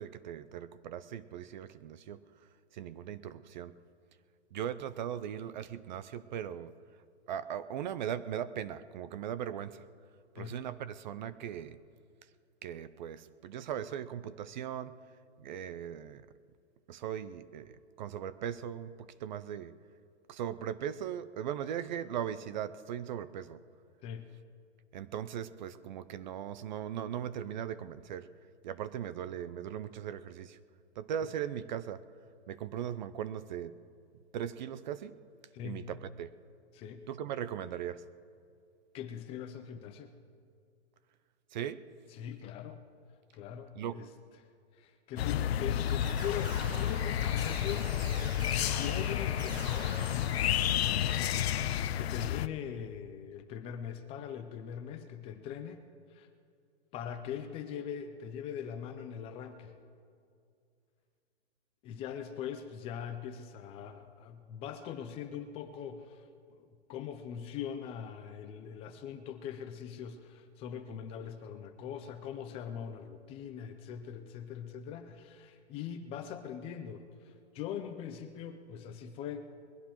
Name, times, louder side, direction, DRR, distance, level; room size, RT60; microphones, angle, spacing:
voice 1, 0.0-2.2 2.7-3.7 4.5-6.7 7.3-9.9 10.3-11.8 12.6-15.0 15.4-16.3 16.9-19.7 20.3-23.6 24.9-28.3 28.6-30.6 31.0-32.0 32.5-33.8 34.3-35.1 35.6-36.3 37.1-38.0 41.5-41.8 43.8-44.0, right 9 dB, 45° right, 14 dB, 0.5 m, -39 dB
voice 2, 35.5-35.9 36.7-37.1 38.9-40.1 42.1-42.8 43.3-44.1 44.7-47.9 48.2-49.9 52.0-55.8 56.1-56.3 56.9-59.7 61.8-79.4, left 8 dB, 15° left, 8 dB, 0.5 m, -42 dB
sound 1, 45.2-52.5, left 10 dB, 65° left, 0.6 m, -31 dB
sound 2, 45.9-51.0, left 1 dB, 15° right, 4.0 m, -45 dB
22.0 x 16.0 x 3.0 m, 2.4 s
hypercardioid pair, 135°, 34 cm